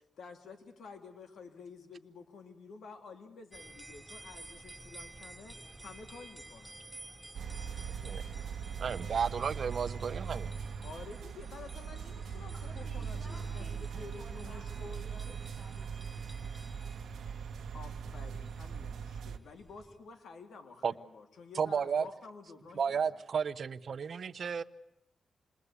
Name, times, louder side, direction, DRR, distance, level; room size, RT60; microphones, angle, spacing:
voice 1, 0.2-6.7 10.8-15.4 17.7-23.1, left 4 dB, 80° left, 2.3 m, -50 dB
sound 1, 3.5-20.0, right 1 dB, 5° right, 2.6 m, -52 dB
sound 2, 7.3-19.4, right 6 dB, 85° right, 1.0 m, -40 dB
voice 2, 7.9-8.2 8.8-10.5 20.8-20.9 21.5-22.1 22.8-24.6, right 6 dB, 55° right, 0.9 m, -33 dB
voice 3, 12.5-16.4, left 1 dB, 30° left, 4.7 m, -56 dB
28.0 x 20.5 x 8.3 m
cardioid pair, 110°, 0 cm